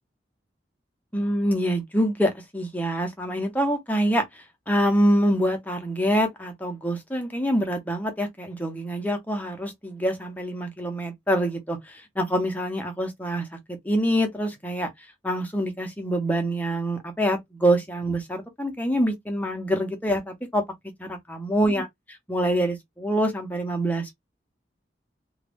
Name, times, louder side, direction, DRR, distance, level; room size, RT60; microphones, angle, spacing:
voice 1, 1.1-20.6 21.0-24.1, equal, 10° left, 0.7 m, -26 dB
2.4 x 2.3 x 3.4 m
head